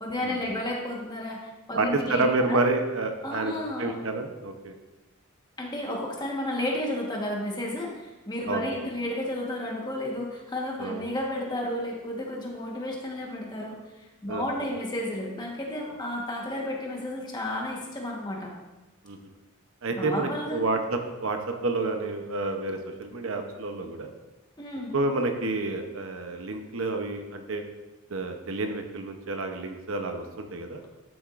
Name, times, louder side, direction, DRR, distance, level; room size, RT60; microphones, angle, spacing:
voice 1, 0.0-2.6 3.2-4.0 5.6-18.5 19.9-20.6 24.6-24.9, left 1 dB, 20° left, -1 dB, 1.4 m, -32 dB
voice 2, 1.7-3.5 3.8-4.7 8.5-8.9 10.8-11.0 14.3-14.6 19.0-19.2 19.8-24.1 24.9-27.6 28.1-30.8, right 2 dB, 65° right, 5 dB, 0.8 m, -29 dB
12.0 x 7.1 x 2.6 m, 1.1 s
head